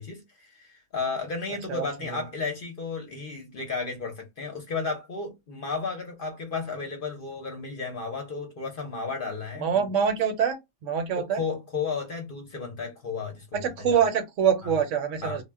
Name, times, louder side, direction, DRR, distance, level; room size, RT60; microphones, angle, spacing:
voice 1, 0.0-9.9 11.2-14.0 15.2-15.4, left 4 dB, 50° left, 0.7 m, -33 dB
voice 2, 1.7-2.2 9.6-11.4 13.5-15.4, right 7 dB, 75° right, 0.9 m, -25 dB
2.1 x 2.1 x 3.4 m
omnidirectional pair, 1.4 m